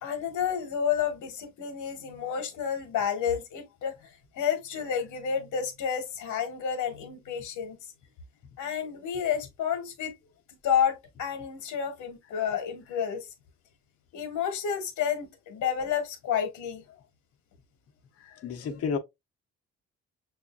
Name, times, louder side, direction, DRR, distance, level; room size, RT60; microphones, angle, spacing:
voice 1, 0.0-7.8 8.6-10.1 10.6-13.3 14.1-16.8, left 8 dB, 75° left, 1.0 m, -30 dB
voice 2, 18.2-19.0, left 5 dB, 50° left, 0.7 m, -31 dB
6.2 x 2.4 x 2.3 m
cardioid pair, 90°, 30 cm